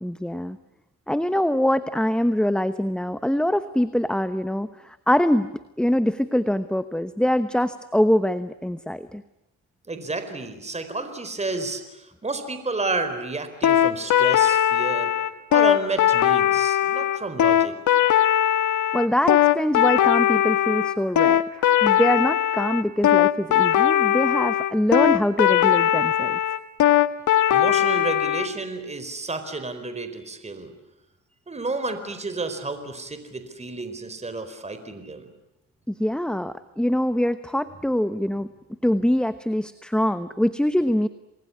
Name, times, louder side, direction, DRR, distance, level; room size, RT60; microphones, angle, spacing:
voice 1, 0.0-0.6 1.1-9.2 18.9-26.4 35.9-38.5 38.8-41.1, left 1 dB, 5° left, 12 dB, 1.0 m, -24 dB
voice 2, 9.9-15.1 15.5-17.8 27.5-30.7 31.5-35.2, right 3 dB, 20° right, 9 dB, 4.4 m, -31 dB
sound 1, 13.6-28.5, left 11 dB, 75° left, 1.6 m, -19 dB
28.5 x 21.0 x 9.8 m, 0.93 s
cardioid pair, 90°, 30 cm